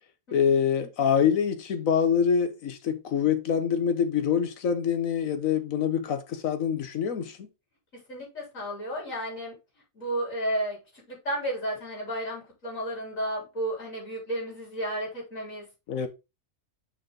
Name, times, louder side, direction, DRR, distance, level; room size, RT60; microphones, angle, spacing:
voice 1, 0.3-7.5 15.9-16.1, left 7 dB, 90° left, 1.4 m, -25 dB
voice 2, 8.1-9.5 9.9-10.8 11.1-15.7, right 1 dB, 75° left, 4.1 m, -32 dB
6.2 x 5.0 x 3.5 m
omnidirectional pair, 1.4 m